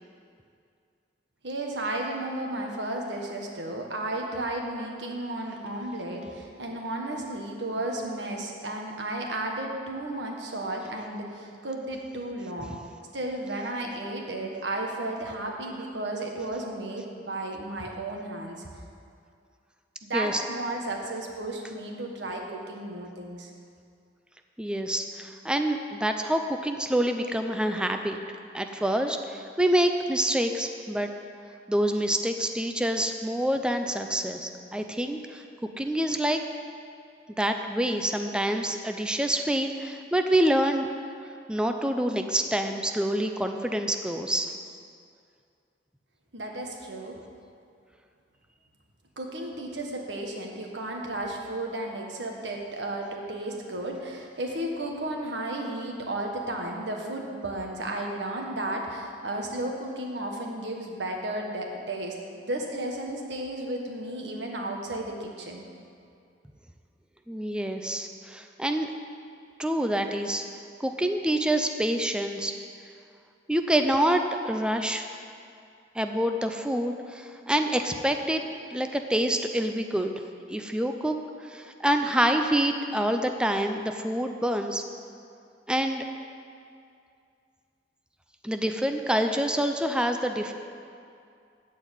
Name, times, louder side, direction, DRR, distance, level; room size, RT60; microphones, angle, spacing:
voice 1, 1.4-12.8 13.1-18.6 20.0-23.5 46.3-47.2 49.2-65.7, right 1 dB, 85° right, 1 dB, 1.6 m, -33 dB
voice 2, 24.6-28.2 28.5-31.1 31.7-35.4 35.8-36.4 37.4-40.9 41.5-44.5 67.3-68.9 69.6-70.4 70.8-72.5 73.5-75.0 75.9-78.4 78.7-80.1 80.5-81.1 81.4-84.8 85.7-86.0 88.4-90.5, right 1 dB, 5° right, 5 dB, 0.6 m, -26 dB
14.0 x 4.7 x 8.8 m, 2.4 s
head